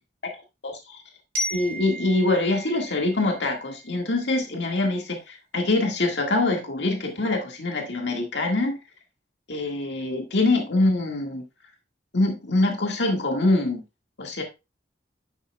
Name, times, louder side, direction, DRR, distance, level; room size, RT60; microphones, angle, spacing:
voice 1, 0.6-1.0 1.5-8.8 9.5-11.4 12.1-13.8 14.2-14.4, left 2 dB, 75° left, 1.7 m, -24 dB
Glockenspiel, 1.3-4.2, equal, 50° right, 3.2 m, -35 dB
11.0 x 6.7 x 2.3 m
head